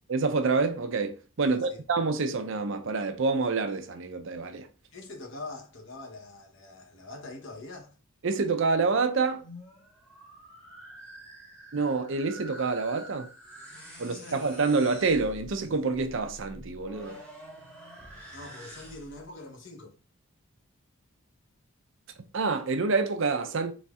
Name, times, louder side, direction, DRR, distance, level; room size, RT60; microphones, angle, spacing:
voice 1, 0.1-4.7 8.2-9.4 11.7-13.3 14.0-17.2 22.3-23.7, right 4 dB, 55° right, 0.5 m, -27 dB
voice 2, 1.4-1.8 4.9-7.9 14.0-14.4 18.3-20.0, left 2 dB, 55° left, 1.0 m, -44 dB
sound 1, 9.4-19.3, right 1 dB, 5° left, 1.1 m, -47 dB
4.2 x 3.2 x 3.6 m
head